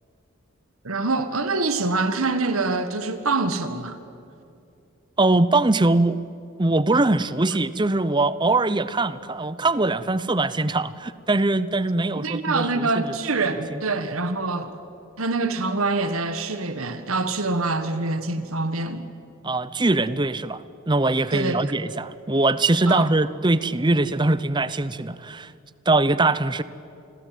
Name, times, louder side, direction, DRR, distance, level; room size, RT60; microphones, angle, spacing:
voice 1, 0.8-4.0 12.2-14.7 15.2-19.1 21.3-21.6 22.9-23.1, right 3 dB, 85° right, 1.7 m, -25 dB
voice 2, 5.2-6.2 6.6-13.1 13.7-13.8 19.4-25.5 25.9-26.6, right 2 dB, 20° right, 0.7 m, -22 dB
28.0 x 21.5 x 9.3 m
head